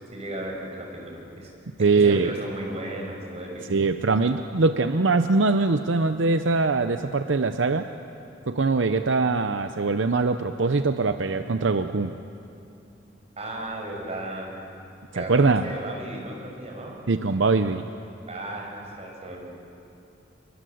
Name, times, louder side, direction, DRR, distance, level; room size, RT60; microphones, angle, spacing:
voice 1, 0.1-1.5 1.9-3.6 13.4-14.5 15.1-17.0 18.3-19.4, right 1 dB, 35° right, 1 dB, 5.7 m, -35 dB
voice 2, 1.8-2.3 3.7-7.9 8.5-12.1 15.2-15.7 17.1-17.8, right 3 dB, 80° right, 9 dB, 0.7 m, -22 dB
28.5 x 23.0 x 8.0 m, 2.7 s
head